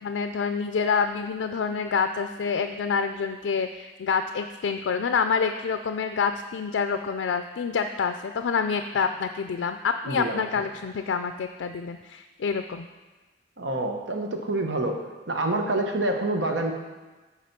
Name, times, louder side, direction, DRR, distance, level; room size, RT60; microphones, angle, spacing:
voice 1, 0.0-12.9, left 5 dB, 90° left, 7 dB, 0.4 m, -27 dB
voice 2, 10.0-10.6 13.6-16.7, right 2 dB, 75° right, 3 dB, 1.0 m, -27 dB
8.4 x 4.9 x 5.8 m, 1.2 s
head